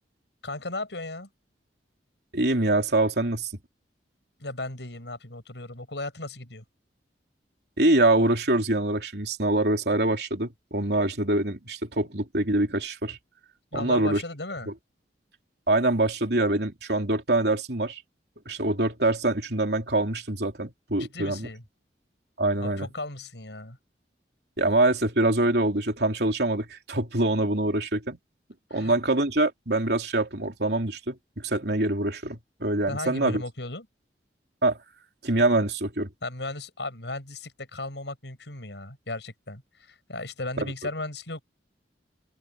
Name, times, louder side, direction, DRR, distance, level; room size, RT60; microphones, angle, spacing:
voice 1, 0.4-1.3 4.4-6.6 13.7-14.7 21.0-21.6 22.6-23.8 28.7-28.9 32.9-33.9 36.2-41.4, left 2 dB, 80° left, 6.3 m, -36 dB
voice 2, 2.3-3.5 7.8-13.2 13.7-14.2 15.7-18.0 18.4-21.5 22.4-22.9 24.6-28.2 28.7-33.4 34.6-34.8 35.2-36.1, right 2 dB, 65° right, 3.4 m, -24 dB
open air
head